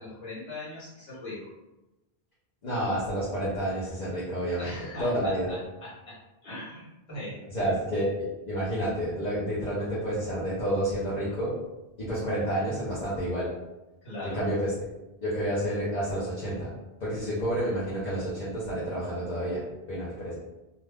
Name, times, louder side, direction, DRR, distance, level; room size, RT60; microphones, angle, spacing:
voice 1, 0.0-1.5 4.6-7.7 14.0-14.4, left 1 dB, 75° left, -8 dB, 1.4 m, -40 dB
voice 2, 2.6-5.5 7.5-8.1 8.5-11.6 12.0-13.5 14.2-14.7 15.2-16.7 17.0-20.3, right 1 dB, 50° left, -8 dB, 0.9 m, -29 dB
2.5 x 2.3 x 3.4 m, 1.0 s
omnidirectional pair, 1.0 m